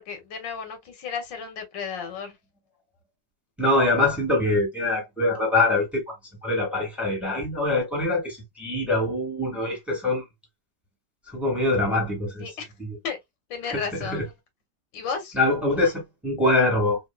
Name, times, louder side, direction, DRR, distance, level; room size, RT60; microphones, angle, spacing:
voice 1, 0.0-2.4 12.4-12.7 13.0-13.2 13.5-14.3 14.9-15.4, left 6 dB, 90° left, 1.8 m, -33 dB
voice 2, 3.6-6.1 6.4-10.2 11.3-12.5 12.8-13.0 14.0-14.2 15.3-17.0, left 2 dB, ahead, 1.4 m, -24 dB
3.7 x 2.7 x 2.2 m
omnidirectional pair, 1.9 m